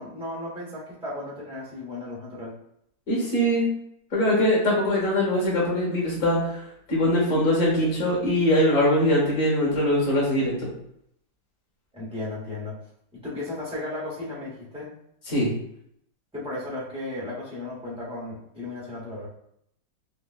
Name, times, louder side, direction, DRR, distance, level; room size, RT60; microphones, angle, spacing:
voice 1, 0.0-2.5 11.9-12.7 13.1-14.9 16.3-19.3, left 2 dB, 5° right, -7 dB, 0.4 m, -35 dB
voice 2, 3.1-3.7 4.1-6.6 6.9-10.5 15.3-15.5, left 1 dB, 45° left, -4 dB, 1.6 m, -22 dB
4.7 x 2.1 x 2.4 m, 0.73 s
omnidirectional pair, 2.2 m